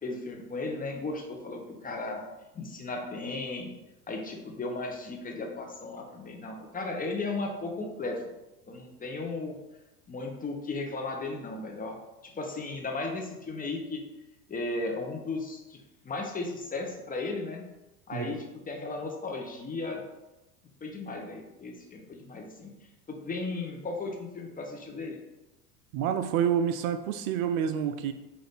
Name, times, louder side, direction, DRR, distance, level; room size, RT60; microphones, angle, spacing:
voice 1, 0.0-2.2 2.5-3.7 4.1-8.2 8.7-9.6 10.1-12.0 12.2-14.0 14.5-15.8 16.0-17.6 18.1-20.0 20.8-22.7 23.1-25.2, left 3 dB, 20° left, 1 dB, 0.8 m, -35 dB
voice 2, 25.9-28.1, right 8 dB, 60° right, 8 dB, 0.5 m, -28 dB
5.5 x 2.6 x 3.5 m, 0.99 s
hypercardioid pair, 95°, 47 cm